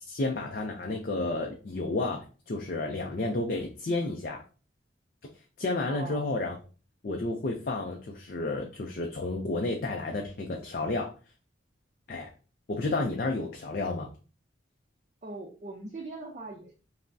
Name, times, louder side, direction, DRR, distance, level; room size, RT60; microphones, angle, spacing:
voice 1, 0.1-4.4 5.6-6.6 7.0-11.1 12.1-12.3 12.7-14.1, left 2 dB, 45° left, 2 dB, 0.4 m, -31 dB
voice 2, 5.9-6.3 15.2-16.7, right 2 dB, 35° right, 1 dB, 0.5 m, -41 dB
5.5 x 2.1 x 2.6 m, 0.37 s
head